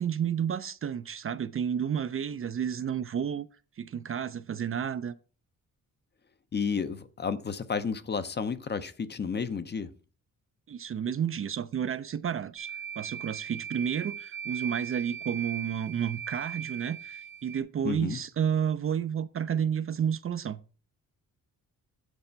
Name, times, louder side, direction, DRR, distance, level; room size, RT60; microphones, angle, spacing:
voice 1, 0.0-3.5 3.8-5.1 10.7-12.7 13.0-20.6, right 8 dB, 40° right, 0.4 m, -31 dB
voice 2, 6.5-9.9 17.8-18.2, left 5 dB, 30° left, 0.6 m, -32 dB
sound 1, 12.6-17.6, right 8 dB, 75° right, 0.9 m, -39 dB
8.1 x 4.3 x 5.6 m
cardioid pair, 120°, 34 cm